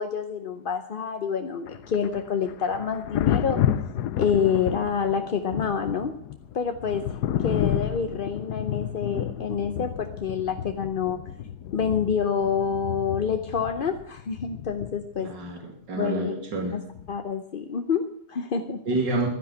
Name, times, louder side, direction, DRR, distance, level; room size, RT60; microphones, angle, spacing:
voice 1, 0.0-3.6 4.2-6.1 6.5-11.2 11.7-15.3 16.0-16.3 17.1-19.0, left 6 dB, 50° left, 7 dB, 0.7 m, -27 dB
Thunder, 1.7-15.3 17.0-17.2, left 10 dB, 70° left, 1.2 m, -31 dB
voice 2, 15.2-16.8 18.9-19.3, right 2 dB, 85° right, 2 dB, 3.0 m, -29 dB
12.0 x 10.0 x 8.5 m, 0.68 s
omnidirectional pair, 1.9 m